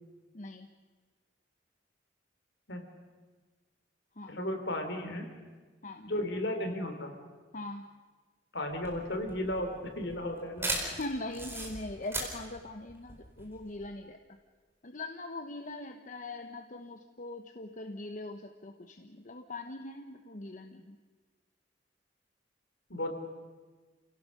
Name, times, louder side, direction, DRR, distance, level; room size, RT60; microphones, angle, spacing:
voice 1, 0.3-0.7 4.2-4.4 5.8-6.1 7.5-7.8 10.8-14.2 14.8-21.0, left 2 dB, 45° left, 5 dB, 1.0 m, -41 dB
voice 2, 4.3-5.3 6.0-7.1 8.5-10.8 22.9-23.1, left 1 dB, 70° left, 5 dB, 3.1 m, -34 dB
sound 1, 8.7-13.9, right 1 dB, 15° right, 4.3 m, -38 dB
28.5 x 17.0 x 6.5 m, 1.4 s
head